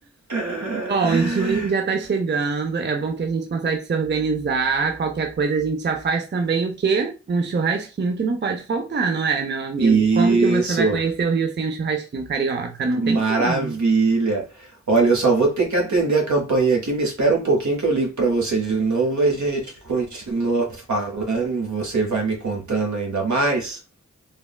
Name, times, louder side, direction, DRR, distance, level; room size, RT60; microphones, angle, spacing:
voice 1, 0.3-1.7 9.8-11.0 12.9-23.8, right 3 dB, 70° right, 1.1 m, -21 dB
voice 2, 0.9-13.7, right 4 dB, 35° right, 0.5 m, -24 dB
3.4 x 2.1 x 2.2 m
cardioid pair, 40°, 30 cm